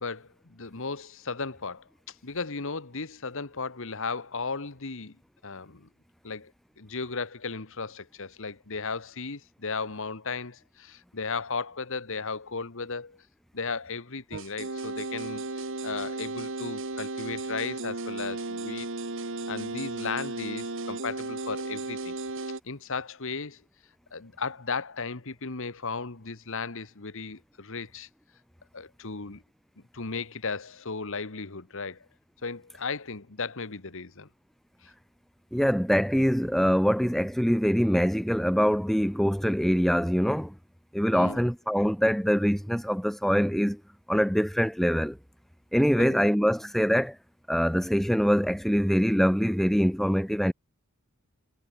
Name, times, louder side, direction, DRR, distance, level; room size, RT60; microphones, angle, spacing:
voice 1, 0.0-1.8 2.2-5.2 5.4-5.9 6.2-6.5 6.8-13.2 13.5-18.9 19.5-22.1 22.6-23.6 24.1-28.1 28.7-29.4 29.9-32.0 32.4-34.3 41.1-41.5 46.0-46.3, left 4 dB, 65° left, 1.5 m, -35 dB
sound 1, 14.3-22.6, right 2 dB, 65° right, 1.9 m, -35 dB
voice 2, 35.5-40.6 40.9-43.8 44.1-45.2 45.7-47.2 47.5-50.5, equal, ahead, 1.9 m, -24 dB
head